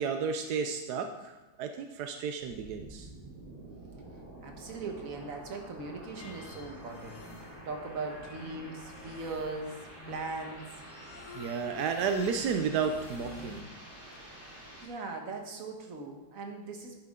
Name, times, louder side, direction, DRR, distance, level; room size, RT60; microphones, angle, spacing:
voice 1, 0.0-3.1 11.3-13.7, right 6 dB, 85° right, 6 dB, 1.2 m, -32 dB
sound 1, 2.4-14.9, right 1 dB, 35° right, 2.5 m, -49 dB
voice 2, 4.4-7.2 7.6-9.8 10.1-10.7 14.8-17.0, right 3 dB, 60° right, 3 dB, 1.7 m, -39 dB
sound 2, 6.2-13.6, left 1 dB, 50° left, 1.7 m, -49 dB
11.0 x 9.7 x 3.7 m, 1.1 s
omnidirectional pair, 1.7 m